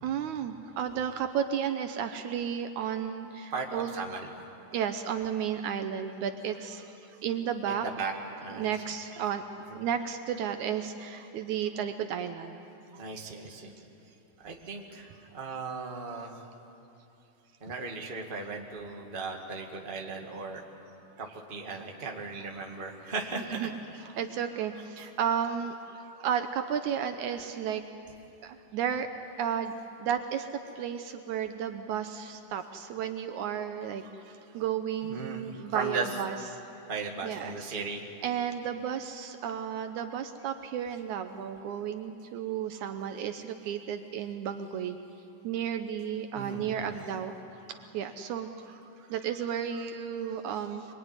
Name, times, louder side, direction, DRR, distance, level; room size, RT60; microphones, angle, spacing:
voice 1, 0.0-3.9 4.7-6.9 7.2-7.9 8.5-9.4 9.7-12.6 23.4-23.7 24.0-27.8 28.4-29.1 29.4-29.7 30.0-30.5 30.8-36.4 37.2-37.7 38.2-45.0 45.4-48.8 49.1-50.9, right 8 dB, 70° right, 7 dB, 2.2 m, -33 dB
voice 2, 3.5-4.3 7.7-8.1 8.4-8.8 9.1-9.3 9.7-9.8 13.0-13.7 14.4-16.5 17.6-20.6 21.2-24.3 24.7-25.1 35.0-35.5 35.7-36.2 36.9-38.0 46.3-47.1 50.6-50.7, right 4 dB, 20° right, 1 dB, 1.7 m, -37 dB
24.5 x 22.5 x 9.8 m, 2.9 s
omnidirectional pair, 3.7 m